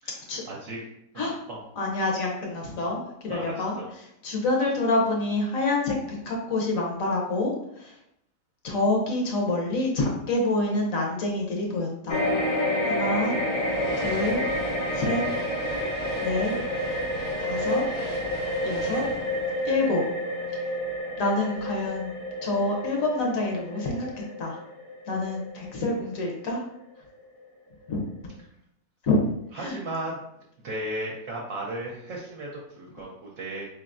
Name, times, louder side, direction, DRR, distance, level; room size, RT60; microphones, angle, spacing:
voice 1, 0.5-0.9 1.1-1.6 3.3-3.8 29.5-30.2 30.6-33.7, right 1 dB, 65° right, -2 dB, 0.9 m, -35 dB
voice 2, 1.8-3.7 4.2-5.9 6.3-7.9 8.6-12.2 12.8-13.4 14.0-14.4 14.9-15.2 16.2-16.5 17.4-17.8 18.6-19.0 19.6-20.0 21.2-22.1 22.4-24.1 24.4-24.5 25.1-26.6 27.9-28.0 29.0-29.2 29.6-29.7, left 2 dB, 65° left, 0 dB, 1.1 m, -27 dB
sound 1, 12.1-26.7 27.1-27.2, left 1 dB, 50° left, 0.7 m, -29 dB
sound 2, 13.2-20.7, right 1 dB, 35° right, 0.7 m, -41 dB
3.8 x 3.4 x 2.5 m, 0.79 s
omnidirectional pair, 1.6 m